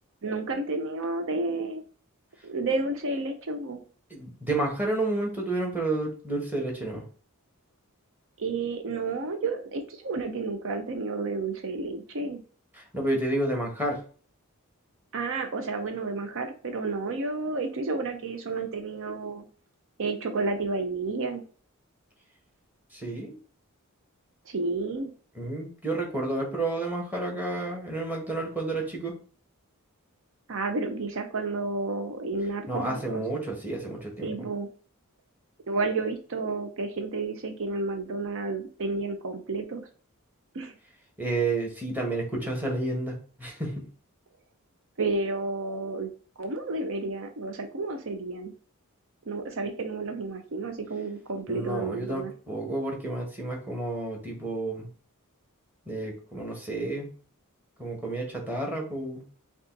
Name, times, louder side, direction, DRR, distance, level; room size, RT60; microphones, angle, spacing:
voice 1, 0.2-1.8 2.4-3.8 8.4-12.4 15.1-19.4 20.0-21.4 24.5-25.1 30.5-33.2 34.2-34.7 35.7-39.9 40.5-40.7 45.0-46.1 46.4-48.5 49.3-52.3, right 3 dB, 65° right, 6 dB, 0.6 m, -31 dB
voice 2, 4.1-7.0 12.7-14.0 22.9-23.4 25.3-29.1 32.7-34.3 41.2-43.9 51.5-54.9 55.9-57.1 57.8-59.2, right 2 dB, 10° right, 0 dB, 1.4 m, -30 dB
5.2 x 2.4 x 3.9 m, 0.41 s
head